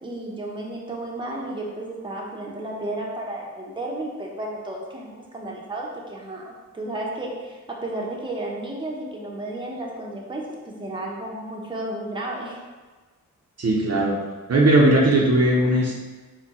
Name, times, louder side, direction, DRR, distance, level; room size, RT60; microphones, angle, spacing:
voice 1, 0.0-12.6, right 1 dB, 15° right, -3 dB, 0.9 m, -33 dB
voice 2, 13.6-14.2 14.5-16.0, right 1 dB, 55° right, -3 dB, 0.8 m, -18 dB
4.3 x 2.3 x 4.2 m, 1.3 s
cardioid pair, 60°, 30 cm